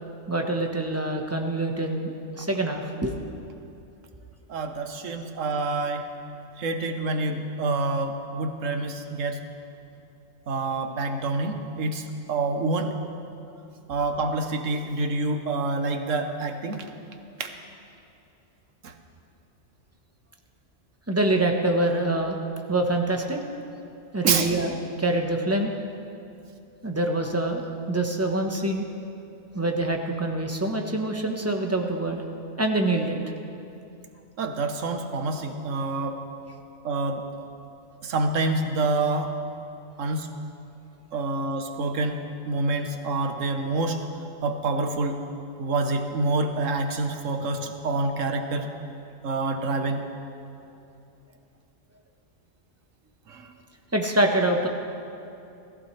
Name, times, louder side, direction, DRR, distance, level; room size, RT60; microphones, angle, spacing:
voice 1, 0.3-3.1 21.1-22.4 22.7-23.4 24.1-25.7 26.8-28.8 29.5-32.2 32.6-33.2 53.9-54.7, right 2 dB, 15° right, 2 dB, 1.0 m, -25 dB
voice 2, 4.5-6.0 6.6-9.4 10.5-13.0 13.9-16.9 17.4-17.5 18.8-18.9 24.2-24.5 34.4-36.2 36.8-37.2 38.0-39.3 40.0-40.3 41.1-44.0 44.4-45.2 45.6-48.7 49.2-50.0 53.3-53.5, right 3 dB, 85° right, 6 dB, 1.3 m, -27 dB
20.0 x 14.5 x 3.3 m, 2.7 s
omnidirectional pair, 1.3 m